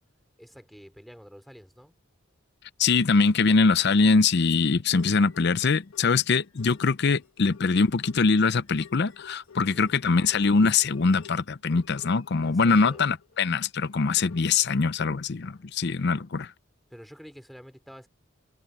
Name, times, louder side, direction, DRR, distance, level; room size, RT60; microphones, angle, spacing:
voice 1, 0.4-1.9 9.7-9.9 12.4-13.0 16.9-18.1, equal, ahead, 3.8 m, -48 dB
voice 2, 2.8-16.5, left 4 dB, 55° left, 0.6 m, -23 dB
sound 1, 4.9-12.4 12.8-15.6 16.0-16.1, left 6 dB, 85° left, 1.4 m, -50 dB
head